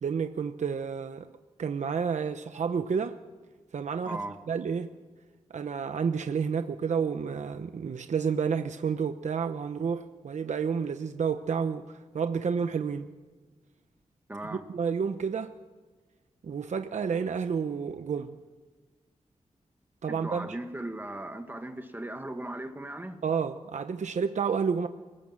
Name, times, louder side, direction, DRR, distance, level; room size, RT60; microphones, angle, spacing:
voice 1, 0.0-1.3 1.6-3.2 3.7-4.2 4.5-4.9 5.5-13.1 14.5-15.5 16.4-18.3 20.0-20.5 23.2-24.9, right 6 dB, 70° right, 8 dB, 0.9 m, -30 dB
voice 2, 4.0-4.4 14.3-14.6 20.1-23.2, right 1 dB, 15° right, 6 dB, 1.7 m, -37 dB
28.5 x 18.5 x 7.5 m, 1.3 s
wide cardioid pair, 115°, 12 cm